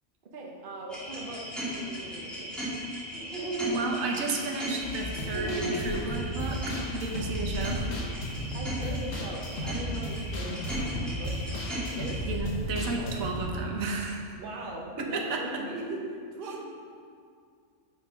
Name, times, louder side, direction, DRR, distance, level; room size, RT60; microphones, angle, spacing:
voice 1, 0.3-2.6 8.5-12.3 13.0-13.1 14.2-16.6, right 2 dB, 45° right, -1 dB, 1.0 m, -40 dB
sound 1, 0.9-12.2, right 1 dB, ahead, 1.7 m, -36 dB
voice 2, 3.7-7.9 12.3-14.4 15.0-15.4, right 3 dB, 85° right, 0 dB, 1.3 m, -32 dB
sound 2, 4.8-13.5, equal, 70° left, 1.4 m, -34 dB
6.4 x 5.3 x 5.0 m, 2.2 s
omnidirectional pair, 1.4 m